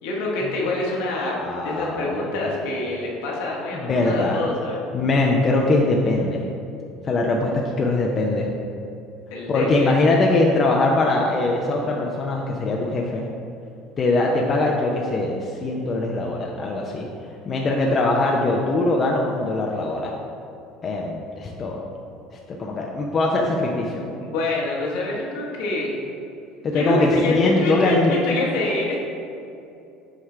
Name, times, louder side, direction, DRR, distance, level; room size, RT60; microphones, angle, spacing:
voice 1, 0.0-1.3 1.6-4.8 9.3-9.9 24.1-25.9 26.7-29.0, left 2 dB, 70° left, -3 dB, 1.4 m, -26 dB
voice 2, 1.4-2.7 3.7-4.4 4.9-6.4 7.0-8.5 9.5-13.3 14.0-17.1 17.5-20.1 20.8-21.8 22.5-24.0 26.6-28.2, left 2 dB, 40° left, -1 dB, 0.7 m, -22 dB
7.5 x 4.6 x 3.3 m, 2.7 s
hypercardioid pair, 70°, 0 cm